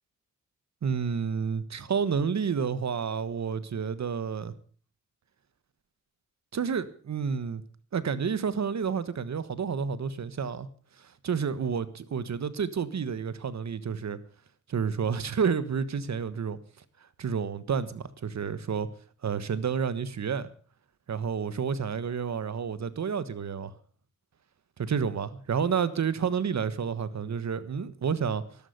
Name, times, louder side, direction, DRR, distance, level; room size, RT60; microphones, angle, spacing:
voice 1, 0.8-4.5 6.5-7.6 7.9-10.7 11.2-14.2 14.7-16.6 17.2-18.9 19.2-20.5 21.1-23.7 24.8-28.4, right 6 dB, 60° right, 15 dB, 1.4 m, -30 dB
12.5 x 12.5 x 6.7 m, 0.43 s
cardioid pair, 60°, 31 cm